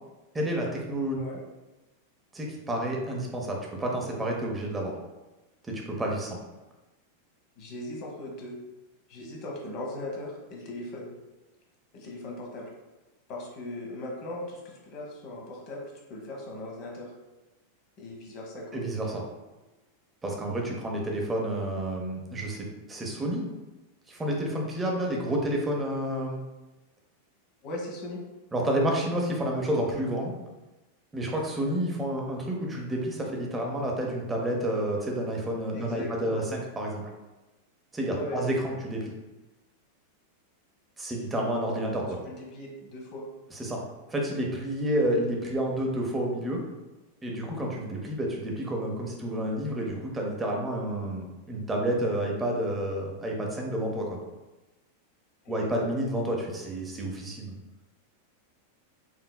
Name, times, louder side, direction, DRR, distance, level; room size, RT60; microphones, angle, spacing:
voice 1, 0.3-1.2 2.3-4.9 5.7-6.4 18.7-19.2 20.2-23.4 24.1-26.4 28.5-30.3 31.1-37.0 37.9-39.1 41.0-42.2 43.5-43.8 44.1-46.6 47.2-54.2 55.5-57.5, right 1 dB, 15° right, -1 dB, 0.8 m, -30 dB
voice 2, 7.6-8.6 9.1-11.1 11.9-12.7 13.3-17.1 18.0-18.8 27.6-28.2 35.7-36.5 38.0-38.4 41.3-41.5 41.9-42.0 42.3-43.3 55.4-56.0, left 1 dB, 40° left, -1 dB, 1.0 m, -39 dB
4.4 x 3.1 x 2.2 m, 1.1 s
figure-of-eight pair, 90°, 0 cm